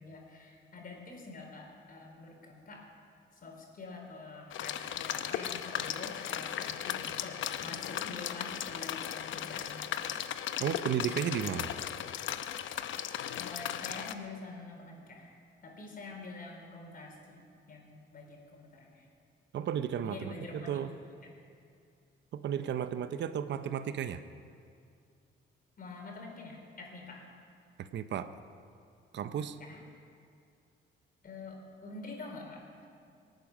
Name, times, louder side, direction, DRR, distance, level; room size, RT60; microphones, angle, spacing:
voice 1, 0.0-2.9 3.3-9.9 13.3-15.4 15.6-19.0 20.0-20.7 25.8-27.2 29.6-29.8 31.2-32.6, left 3 dB, 45° left, 1 dB, 4.3 m, -46 dB
sound 1, 4.5-14.1, left 10 dB, 75° left, 0.8 m, -37 dB
voice 2, 10.6-11.7 19.5-20.9 22.3-24.2 27.8-28.3 29.1-29.6, right 9 dB, 65° right, 11 dB, 0.7 m, -34 dB
24.0 x 9.2 x 6.2 m, 2.4 s
cardioid pair, 90°, 20 cm